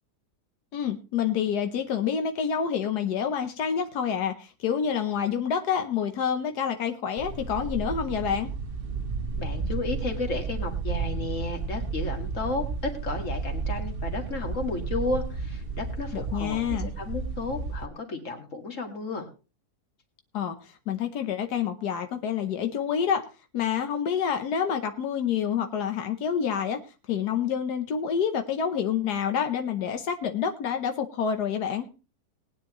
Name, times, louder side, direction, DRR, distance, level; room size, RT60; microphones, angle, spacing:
voice 1, 0.7-8.5 16.1-16.9 20.3-23.2 23.5-26.8 27.1-31.9, left 7 dB, 85° left, 7 dB, 1.5 m, -28 dB
sound 1, 7.2-17.9, right 4 dB, 45° right, 0.9 m, -32 dB
voice 2, 9.4-19.3, left 3 dB, 50° left, 4 dB, 2.5 m, -33 dB
19.5 x 9.8 x 3.1 m, 0.33 s
omnidirectional pair, 1.7 m